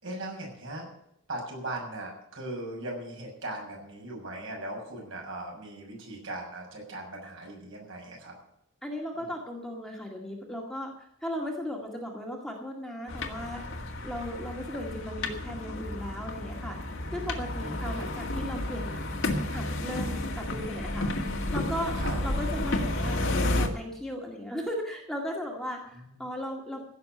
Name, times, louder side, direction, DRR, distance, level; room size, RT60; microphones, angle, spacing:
voice 1, 0.0-0.9 1.3-8.3 9.2-9.3 17.6-18.0 22.0-22.2, right 1 dB, 60° right, -1 dB, 6.7 m, -39 dB
voice 2, 8.8-13.8 14.0-21.1 21.5-23.2 23.5-26.9, equal, ahead, -1 dB, 2.0 m, -37 dB
sound 1, 13.1-23.7, left 1 dB, 60° left, 1.9 m, -31 dB
16.0 x 6.8 x 9.4 m, 0.76 s
head